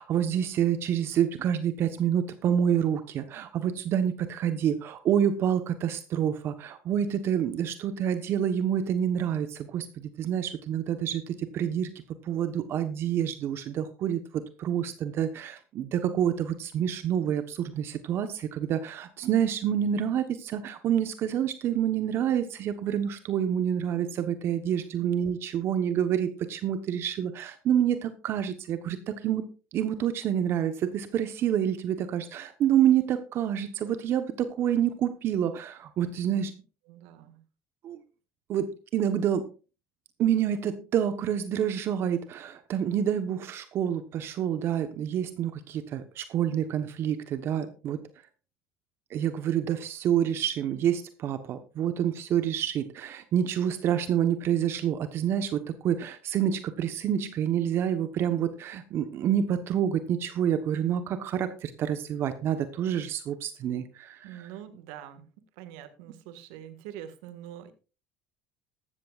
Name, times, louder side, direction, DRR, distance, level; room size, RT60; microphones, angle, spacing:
voice 1, 0.0-11.9 12.2-29.4 29.7-36.5 37.8-38.0 38.5-39.5 40.2-48.0 49.1-64.4, right 9 dB, 55° right, 10 dB, 1.1 m, -28 dB
voice 2, 36.9-37.4 64.2-65.3 65.6-67.7, right 10 dB, 80° right, 10 dB, 1.8 m, -44 dB
15.0 x 13.0 x 2.5 m, 0.33 s
supercardioid pair, 90°, 5 cm